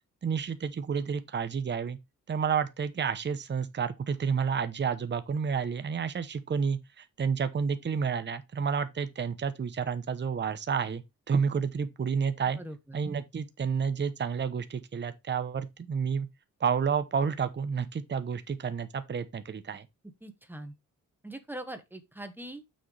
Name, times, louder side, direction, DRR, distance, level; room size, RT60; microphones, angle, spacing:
voice 1, 0.2-2.0 2.3-12.6 12.9-16.3 16.6-19.9, right 6 dB, 35° right, 0.8 m, -30 dB
voice 2, 12.6-13.0 20.2-20.7 21.2-22.6, right 1 dB, 5° right, 1.4 m, -42 dB
7.6 x 6.4 x 3.3 m
cardioid pair, 115°, 32 cm